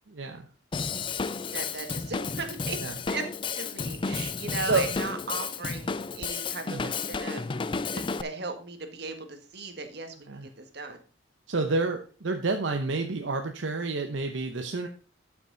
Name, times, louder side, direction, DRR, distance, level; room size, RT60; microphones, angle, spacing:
voice 1, 0.1-0.5 2.8-2.9 4.7-4.8 6.7-6.9 10.3-10.5 11.5-14.9, right 3 dB, 75° right, 5 dB, 0.9 m, -29 dB
Drum kit / Drum, 0.7-8.2, left 4 dB, 25° left, 0.4 m, -32 dB
voice 2, 1.5-2.8 3.1-3.2 3.5-7.5 7.9-11.0, right 3 dB, 60° right, 6 dB, 1.6 m, -37 dB
12.0 x 6.0 x 3.9 m, 0.37 s
head